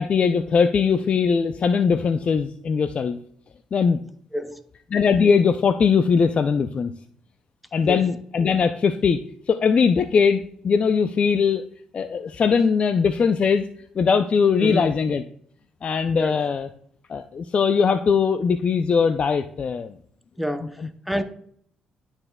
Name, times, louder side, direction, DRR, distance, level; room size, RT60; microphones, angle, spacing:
voice 1, 0.0-3.2 3.7-4.0 4.9-6.9 7.7-11.6 11.9-13.7 14.0-15.2 15.8-16.7 17.1-19.9 20.8-20.9, left 6 dB, 45° left, 0.4 m, -20 dB
voice 2, 4.3-4.6 7.8-8.0 14.6-14.9 16.1-16.4 20.4-21.2, equal, ahead, 0.7 m, -28 dB
11.5 x 4.4 x 2.3 m
supercardioid pair, 60°, 3 cm